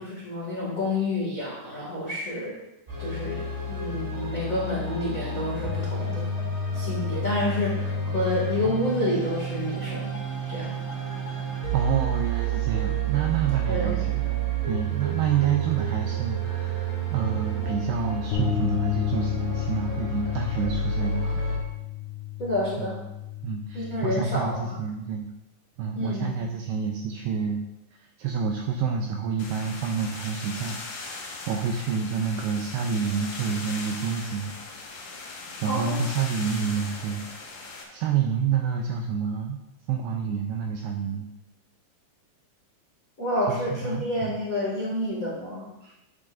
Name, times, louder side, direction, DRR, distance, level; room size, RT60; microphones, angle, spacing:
voice 1, 0.0-2.5 3.0-6.3 6.7-10.2 10.5-10.8 13.7-14.0 22.4-23.0 23.7-24.7 25.9-26.3 35.6-36.0 43.2-45.7, left 1 dB, 35° left, -6 dB, 1.3 m, -29 dB
sound 1, 2.9-21.6, right 3 dB, 20° right, 2.3 m, -30 dB
voice 2, 11.7-14.2 14.7-21.4 22.8-22.9 23.4-25.3 25.8-27.6 28.2-34.5 35.6-37.2 37.9-39.6 39.9-41.3 43.5-44.3 45.8-45.9, right 6 dB, 85° right, 2 dB, 2.3 m, -28 dB
sound 2, 18.3-24.6, left 10 dB, 85° left, 2.1 m, -32 dB
sound 3, 29.4-37.8, left 3 dB, 65° left, 2.4 m, -39 dB
11.0 x 8.6 x 2.6 m, 0.91 s
omnidirectional pair, 5.3 m